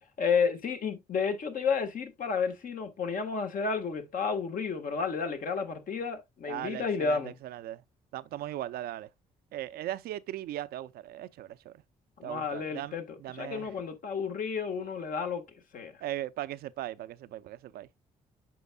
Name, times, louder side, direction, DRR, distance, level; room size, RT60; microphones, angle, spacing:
voice 1, 0.2-7.4 12.2-13.0 13.3-15.4 15.7-15.9, left 5 dB, 55° left, 1.4 m, -31 dB
voice 2, 6.5-7.8 8.1-9.1 9.5-11.7 12.2-13.7 16.0-17.9, right 13 dB, 70° right, 0.5 m, -38 dB
8.4 x 5.8 x 2.2 m
hypercardioid pair, 55°, 17 cm